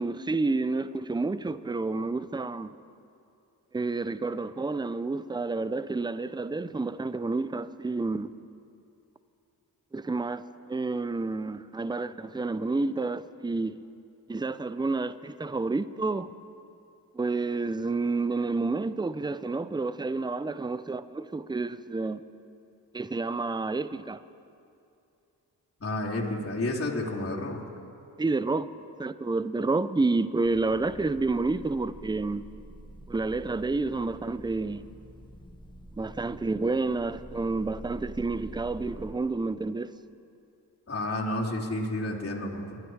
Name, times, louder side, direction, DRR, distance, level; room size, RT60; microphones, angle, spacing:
voice 1, 0.0-2.8 3.7-8.3 9.9-13.8 14.3-16.3 17.1-22.2 22.9-24.2 28.2-28.7 29.0-32.4 33.1-34.8 36.0-39.9, right 3 dB, 10° right, 0.6 m, -29 dB
voice 2, 25.8-27.6 36.3-36.5 40.9-42.8, left 1 dB, 30° left, 3.2 m, -31 dB
sound 1, 30.4-39.1, right 1 dB, 10° left, 1.4 m, -46 dB
27.0 x 9.5 x 4.8 m
supercardioid pair, 45°, 43 cm